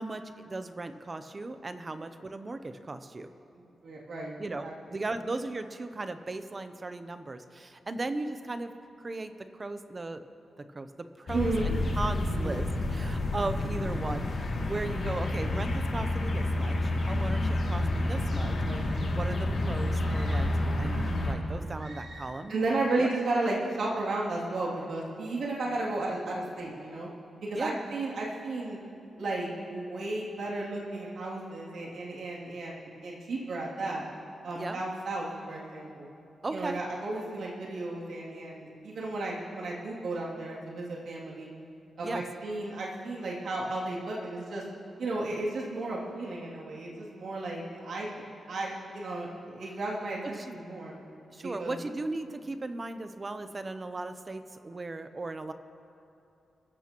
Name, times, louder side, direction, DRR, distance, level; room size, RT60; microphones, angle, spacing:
voice 1, 0.0-3.3 4.4-8.7 9.0-10.2 10.6-18.6 19.1-20.5 20.8-22.5 23.0-23.1 27.5-27.8 34.5-34.8 36.4-36.8 42.0-42.2 50.2-50.6 51.3-55.5, right 2 dB, 25° right, 9 dB, 0.7 m, -37 dB
voice 2, 3.8-4.4 4.6-5.0 11.3-11.7 12.3-12.6 18.6-18.9 22.5-27.1 27.4-28.8 29.2-34.0 34.4-36.1 36.5-41.5 42.0-44.6 45.0-48.1 48.5-50.9 51.6-51.7, right 2 dB, 70° right, -5 dB, 2.7 m, -33 dB
sound 1, 11.3-21.3, left 1 dB, 50° left, 2.5 m, -29 dB
sound 2, 20.0-21.3 21.7-22.5, right 2 dB, 50° right, 2.7 m, -48 dB
28.0 x 14.5 x 3.0 m, 2.7 s
wide cardioid pair, 155°, 0 cm